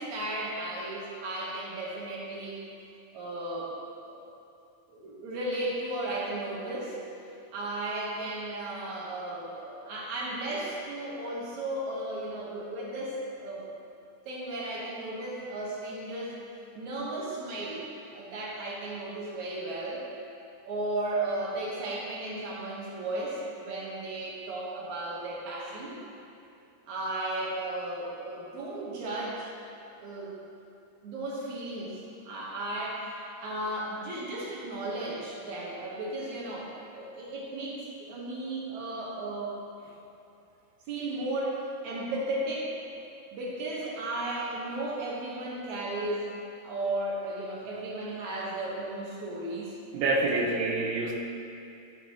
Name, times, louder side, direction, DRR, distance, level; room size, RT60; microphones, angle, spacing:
voice 1, 0.0-2.6 3.1-3.7 4.1-4.3 4.9-7.0 7.5-13.6 14.3-16.4 16.7-17.9 18.1-20.0 20.6-26.0 26.9-29.5 30.0-30.3 31.0-39.6 40.9-42.7 43.3-46.3 46.6-49.8, right 2 dB, 70° right, -5 dB, 1.9 m, -35 dB
voice 2, 49.9-51.1, right 2 dB, 85° right, -1 dB, 2.6 m, -26 dB
10.5 x 6.2 x 2.8 m, 2.7 s
omnidirectional pair, 4.3 m